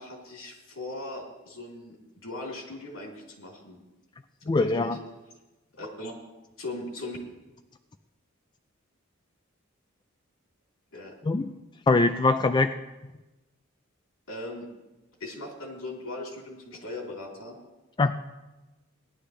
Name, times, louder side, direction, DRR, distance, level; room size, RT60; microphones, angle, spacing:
voice 1, 0.0-2.0 2.2-3.8 4.4-5.0 5.7-6.1 6.6-7.2 10.9-11.1 14.3-14.7 15.2-17.6, left 2 dB, 75° left, -1 dB, 3.3 m, -39 dB
voice 2, 4.5-5.0 11.3-11.5 11.9-12.7 18.0-18.1, left 3 dB, 20° left, 8 dB, 0.3 m, -22 dB
18.5 x 11.5 x 3.2 m, 1.1 s
head